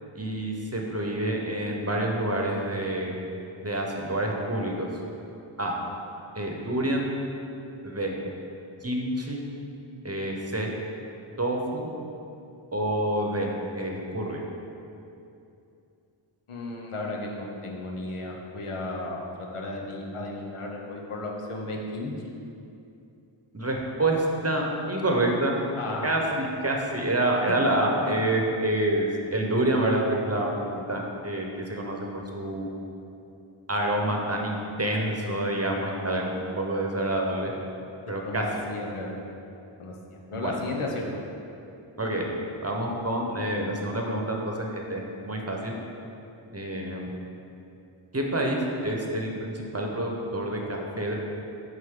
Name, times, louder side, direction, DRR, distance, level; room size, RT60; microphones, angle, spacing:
voice 1, 0.1-3.2 3.6-4.9 5.6-5.7 6.3-7.1 7.8-8.1 8.8-9.4 10.0-10.7 11.4-11.9 12.7-13.5 13.7-14.4 23.5-25.5 26.0-32.7 33.7-37.5 38.1-38.5 40.3-40.6 42.0-42.3 42.6-45.7 46.5-47.1 48.1-51.1, right 1 dB, 30° right, 0 dB, 0.8 m, -27 dB
voice 2, 16.5-22.3 25.8-26.2 28.0-28.3 38.0-38.4 38.7-39.2 39.8-41.1, left 2 dB, 90° left, -1 dB, 0.9 m, -34 dB
6.4 x 5.2 x 3.7 m, 2.7 s
wide cardioid pair, 50°, 49 cm